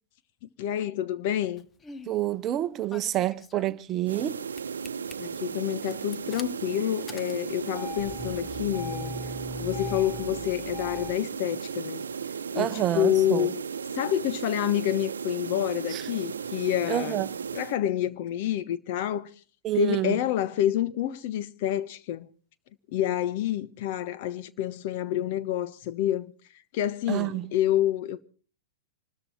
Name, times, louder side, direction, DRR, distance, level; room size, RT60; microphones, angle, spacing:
voice 1, 0.6-1.6 5.2-9.2 9.6-12.0 12.5-13.6 14.0-17.2 17.5-19.3 19.7-22.3 22.9-26.3 26.7-28.2, left 12 dB, 55° left, 1.0 m, -28 dB
Engine starting, 1.6-2.2 2.9-4.3 4.6-5.1 5.8-11.1, left 4 dB, 20° left, 0.9 m, -40 dB
voice 2, 2.1-4.5 12.5-13.5 15.9-16.0 16.9-17.3 19.6-20.2 27.1-27.5, right 13 dB, 30° right, 0.8 m, -28 dB
sound 1, 4.0-17.8, right 6 dB, 85° right, 0.8 m, -35 dB
25.0 x 13.5 x 4.4 m
hypercardioid pair, 110°, 0 cm